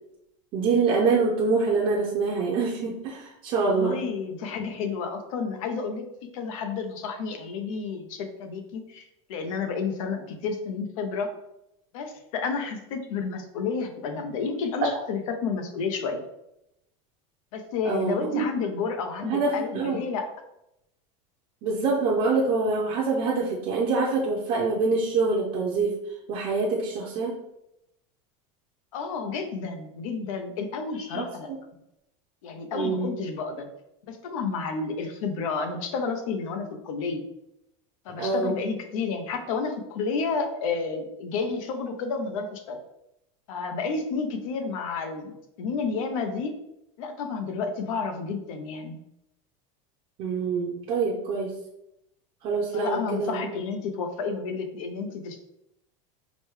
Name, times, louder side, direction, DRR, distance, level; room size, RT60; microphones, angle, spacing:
voice 1, 0.5-4.0 17.8-18.4 19.2-20.0 21.6-26.0 26.3-27.3 31.1-31.3 32.7-33.1 38.2-38.6 50.2-51.5 52.4-53.5, right 4 dB, 35° right, -3 dB, 0.5 m, -25 dB
voice 2, 3.6-6.0 6.3-11.3 11.9-16.2 17.5-20.2 28.9-31.5 32.4-33.7 34.1-37.2 38.0-42.8 43.5-46.5 47.0-49.0 52.7-55.4, left 5 dB, 85° left, 6 dB, 0.7 m, -31 dB
5.0 x 2.2 x 3.1 m, 0.84 s
supercardioid pair, 175°, 17 cm